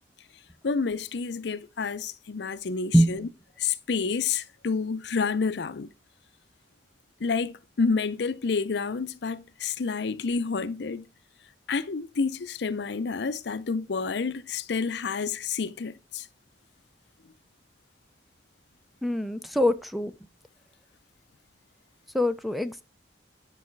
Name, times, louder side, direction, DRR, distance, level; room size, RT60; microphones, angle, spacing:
voice 1, 0.6-3.3 3.6-5.9 7.2-11.0 11.7-16.3, left 5 dB, 65° left, 0.5 m, -29 dB
voice 2, 19.0-20.1 22.1-22.8, equal, ahead, 0.5 m, -23 dB
9.6 x 4.9 x 4.5 m
head